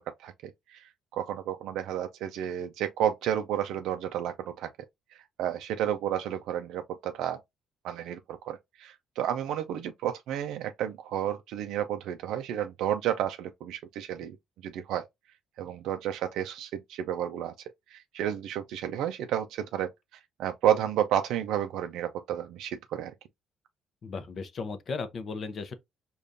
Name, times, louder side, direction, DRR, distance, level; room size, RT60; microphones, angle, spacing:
voice 1, 0.0-4.7 5.1-7.4 7.8-14.4 14.6-15.1 15.6-17.5 17.9-19.9 20.4-23.1, right 10 dB, 85° right, 0.3 m, -31 dB
voice 2, 24.0-25.7, left 4 dB, 40° left, 0.6 m, -36 dB
5.1 x 2.3 x 2.6 m
cardioid pair, 140°, 0 cm